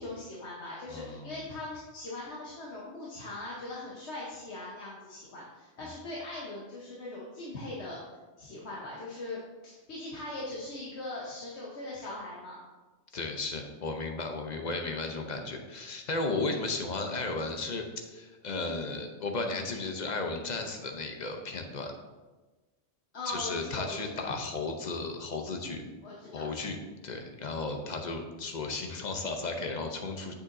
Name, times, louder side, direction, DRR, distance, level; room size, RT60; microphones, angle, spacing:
voice 1, 0.0-8.0 8.4-9.4 9.6-12.6 23.1-24.3 26.0-26.4, left 2 dB, 65° left, -5 dB, 1.4 m, -40 dB
voice 2, 0.9-1.3 13.1-21.9 23.2-25.8 26.3-26.8 27.0-30.3, left 3 dB, 45° left, 4 dB, 0.8 m, -34 dB
8.1 x 6.8 x 2.7 m, 1.2 s
omnidirectional pair, 1.2 m